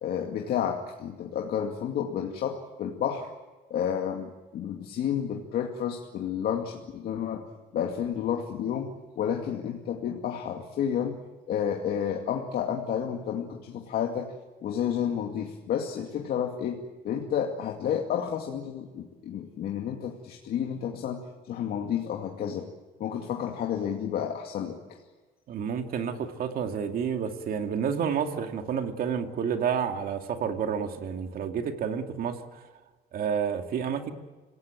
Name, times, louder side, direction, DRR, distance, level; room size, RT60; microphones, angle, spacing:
voice 1, 0.0-3.3 3.7-7.4 7.7-11.2 11.5-14.3 14.6-22.7 23.0-24.8, left 8 dB, 65° left, 1 dB, 2.4 m, -31 dB
voice 2, 25.5-32.7 33.1-34.1, right 7 dB, 60° right, 5 dB, 2.5 m, -30 dB
26.5 x 17.5 x 9.1 m, 1.3 s
cardioid pair, 110°, 17 cm